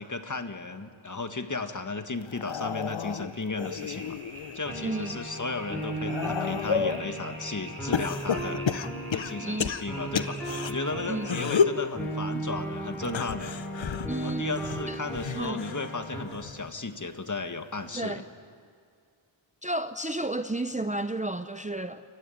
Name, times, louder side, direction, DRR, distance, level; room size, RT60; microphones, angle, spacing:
voice 1, 0.0-4.2 4.5-8.7 9.1-13.5 14.2-18.2, left 3 dB, 35° left, 1.7 m, -35 dB
sound 1, 2.3-4.6 5.1-7.1 7.9-10.7 11.2-11.8 13.0-15.9 16.3-16.7 17.9-18.0, left 6 dB, 65° left, 0.9 m, -31 dB
sound 2, 2.8-11.5, right 1 dB, 75° right, 6.5 m, -46 dB
sound 3, 4.6-16.2, right 1 dB, 5° left, 7.1 m, -36 dB
voice 2, 4.8-5.2 9.4-9.8 11.1-11.3 14.1-14.5 14.9-15.0 15.4-15.6 17.9-18.2 19.6-22.0, right 2 dB, 15° right, 0.7 m, -32 dB
28.5 x 15.0 x 10.0 m
wide cardioid pair, 60°, 49 cm